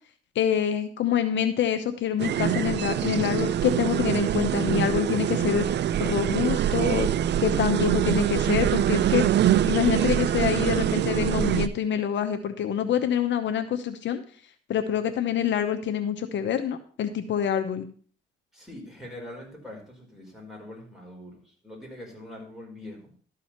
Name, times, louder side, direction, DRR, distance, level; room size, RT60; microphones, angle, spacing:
voice 1, 0.3-5.6 6.0-7.1 7.4-9.2 9.7-14.2 14.7-17.9, left 9 dB, 70° left, 8 dB, 0.9 m, -26 dB
sound 1, 2.2-11.7, right 11 dB, 60° right, 0.5 m, -24 dB
voice 2, 18.5-23.1, left 1 dB, ahead, -2 dB, 5.0 m, -43 dB
12.5 x 4.9 x 5.7 m, 0.43 s
cardioid pair, 90°, 20 cm